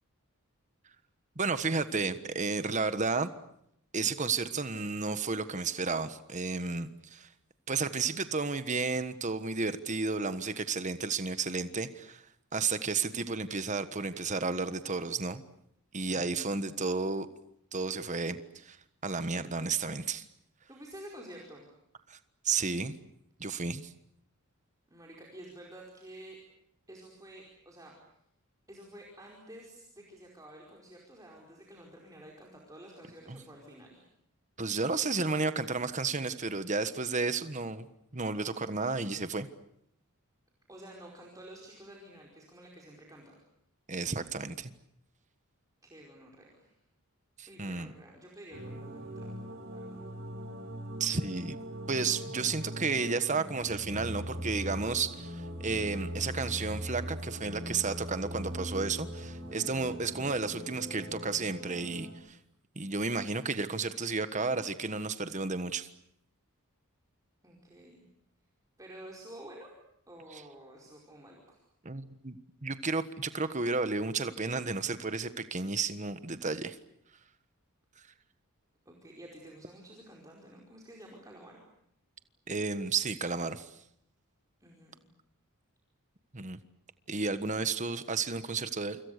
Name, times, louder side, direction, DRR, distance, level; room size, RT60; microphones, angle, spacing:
voice 1, 1.4-3.3 3.9-7.3 7.7-12.2 12.5-15.4 15.9-17.3 17.7-18.4 18.7-18.8 19.0-20.2 22.1-22.2 22.4-22.9 23.4-23.9 33.3-33.4 34.6-37.9 38.1-39.5 43.9-44.7 47.4-47.9 51.0-51.6 51.9-62.4 62.7-65.9 71.8-72.4 72.6-76.8 82.5-83.7 86.3-86.6 87.1-89.0, right 4 dB, 35° right, 11 dB, 1.4 m, -32 dB
voice 2, 20.7-21.7 24.9-26.4 26.9-27.9 28.7-34.0 40.7-43.3 45.8-46.8 47.5-49.3 49.7-50.0 59.5-59.8 67.4-68.0 68.8-69.7 70.1-71.6 78.8-81.6 84.6-85.0, right 1 dB, 15° right, -1 dB, 4.9 m, -50 dB
sound 1, 48.5-62.1, equal, 55° right, 6.9 m, -40 dB
28.5 x 26.5 x 6.8 m, 0.73 s
head